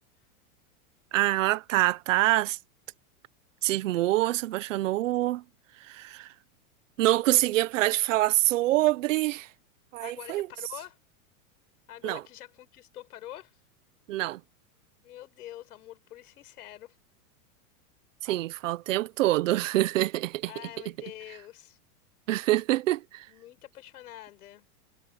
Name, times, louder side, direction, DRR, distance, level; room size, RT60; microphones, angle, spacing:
voice 1, 1.1-2.6 3.6-5.4 5.9-6.3 7.0-9.5 9.9-10.5 12.0-12.2 14.1-14.4 18.2-20.5 22.3-23.3, right 16 dB, 55° right, 0.9 m, -25 dB
voice 2, 10.0-11.0 11.9-13.6 15.0-17.0 18.2-18.4 20.4-21.8 23.3-24.7, left 13 dB, 80° left, 4.9 m, -45 dB
supercardioid pair, 170°, 44 cm